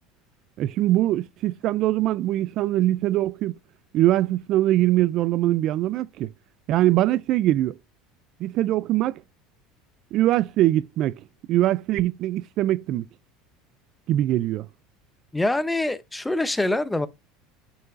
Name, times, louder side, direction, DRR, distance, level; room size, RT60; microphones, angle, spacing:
voice 1, 0.6-3.5 3.9-6.3 6.7-7.8 8.4-9.2 10.1-11.2 11.5-13.0 14.1-14.7, right 14 dB, 50° right, 0.3 m, -22 dB
voice 2, 15.3-17.1, left 2 dB, 5° left, 0.6 m, -24 dB
9.4 x 5.6 x 2.5 m
supercardioid pair, 130°, 0 cm